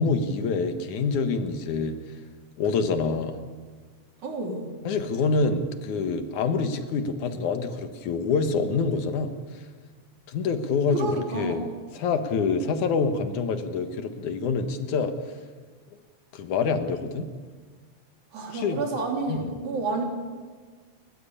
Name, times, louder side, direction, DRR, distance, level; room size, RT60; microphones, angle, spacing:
voice 1, 0.0-2.0 2.6-3.4 4.9-9.3 10.3-11.1 11.3-11.6 11.9-15.1 16.3-17.3 18.5-18.8 19.3-19.5, left 4 dB, 80° left, 8 dB, 2.9 m, -26 dB
voice 2, 4.2-4.7 11.0-11.7 18.3-20.0, right 2 dB, 80° right, 1 dB, 5.1 m, -30 dB
30.0 x 14.5 x 8.6 m, 1.5 s
omnidirectional pair, 3.4 m